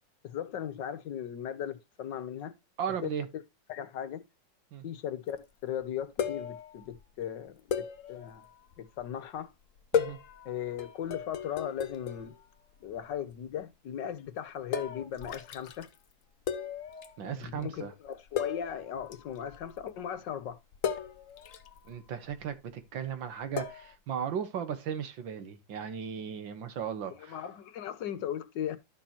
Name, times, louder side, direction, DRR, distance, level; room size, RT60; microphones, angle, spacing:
voice 1, 0.2-2.5 3.0-3.4 3.7-4.2 4.8-8.4 8.8-9.5 10.4-12.3 12.8-15.9 17.2-20.6 27.2-28.8, left 9 dB, 70° left, 1.6 m, -37 dB
voice 2, 2.8-3.3 4.7-4.8 9.9-10.2 17.2-17.9 21.9-27.4, right 8 dB, 80° right, 2.0 m, -36 dB
sound 1, 5.4-5.5 5.8-5.9 6.2-7.0 7.7-9.1 9.8-12.5 12.7-13.2 13.5-13.6 14.7-16.0 16.5-17.2 17.4-17.6 18.1-18.2 18.4-19.9 20.7-22.4 23.6-24.0, left 7 dB, 55° left, 1.0 m, -36 dB
12.0 x 6.5 x 2.9 m
omnidirectional pair, 2.0 m